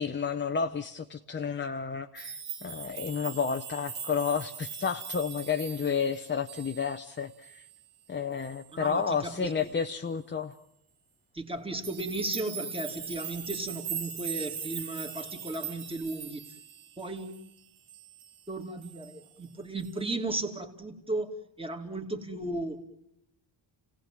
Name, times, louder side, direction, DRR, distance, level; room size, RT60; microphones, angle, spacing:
voice 1, 0.0-7.7 8.1-10.6, left 6 dB, 25° left, 6 dB, 0.8 m, -31 dB
sound 1, 2.2-7.1 7.4-7.8 8.4-8.6 11.8-17.5 17.9-18.4 18.8-19.2 19.8-20.0, right 7 dB, 85° right, 4.8 m, -40 dB
voice 2, 8.7-9.5 11.3-16.5 17.0-17.3 18.5-21.3 21.6-22.8, right 2 dB, 10° right, 3 dB, 2.5 m, -35 dB
30.0 x 18.0 x 7.6 m, 0.80 s
cardioid pair, 120°, 47 cm